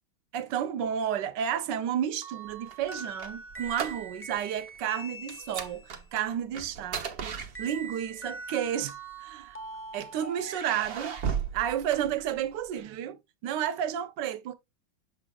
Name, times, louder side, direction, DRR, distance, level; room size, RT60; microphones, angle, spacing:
voice 1, 0.3-9.6 9.9-11.2 11.5-14.6, right 9 dB, 70° right, 1.2 m, -32 dB
sound 1, 2.2-6.0 7.5-11.3, right 3 dB, 10° left, 0.7 m, -43 dB
sound 2, 2.5-4.4 4.6-4.9 5.3-8.1 8.9-9.8 10.4-12.7, right 7 dB, 50° right, 0.7 m, -37 dB
7.7 x 5.9 x 2.3 m
omnidirectional pair, 2.2 m